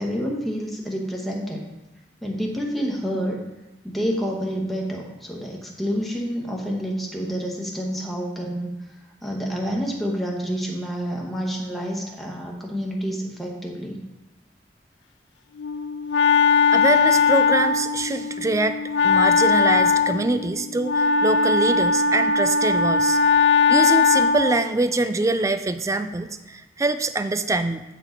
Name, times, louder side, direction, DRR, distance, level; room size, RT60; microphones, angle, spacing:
voice 1, 0.0-1.6 2.2-3.4 3.8-8.7 9.2-14.0, equal, ahead, -2 dB, 1.0 m, -28 dB
Wind instrument woodwind instrument, 15.6-24.7, left 5 dB, 85° left, 0.3 m, -19 dB
voice 2, 16.7-18.8 19.0-23.2 23.7-27.8, right 2 dB, 20° right, 10 dB, 0.3 m, -24 dB
8.5 x 4.5 x 3.8 m, 1.0 s
head